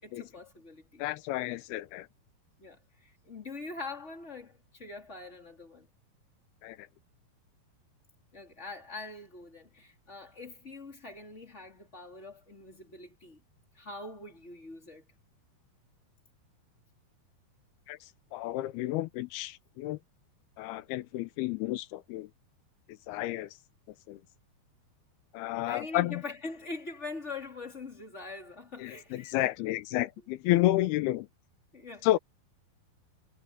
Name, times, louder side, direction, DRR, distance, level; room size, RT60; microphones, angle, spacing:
voice 1, 0.0-1.0 2.6-5.9 8.3-13.4 13.7-15.1 25.6-29.4 29.9-30.0 31.7-32.1, left 3 dB, 20° left, 3.4 m, -43 dB
voice 2, 1.0-2.1 6.6-6.9 17.9-18.0 18.3-20.0 20.6-22.3 23.1-23.5 24.1-24.2 25.3-26.2 28.8-31.3 32.0-32.2, left 16 dB, 85° left, 2.8 m, -31 dB
omnidirectional pair, 4.5 m